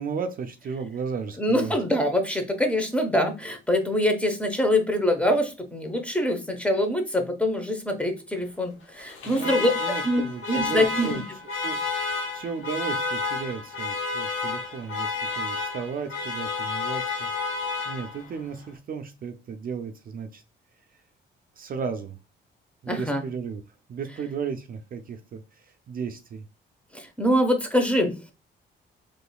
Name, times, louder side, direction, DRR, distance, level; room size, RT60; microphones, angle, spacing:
voice 1, 0.0-1.8 9.2-11.2 11.6-11.8 12.3-17.3 17.9-20.4 21.6-22.2 22.8-23.6 23.9-25.4 25.9-26.4, right 6 dB, 45° right, 7 dB, 0.4 m, -34 dB
voice 2, 1.4-9.7 10.0-11.2 22.9-23.2 26.9-28.3, left 1 dB, 5° left, 5 dB, 0.8 m, -24 dB
Alarm, 9.0-18.4, left 4 dB, 80° left, 1.0 m, -31 dB
3.8 x 3.1 x 2.2 m, 0.29 s
cardioid pair, 90°, 20 cm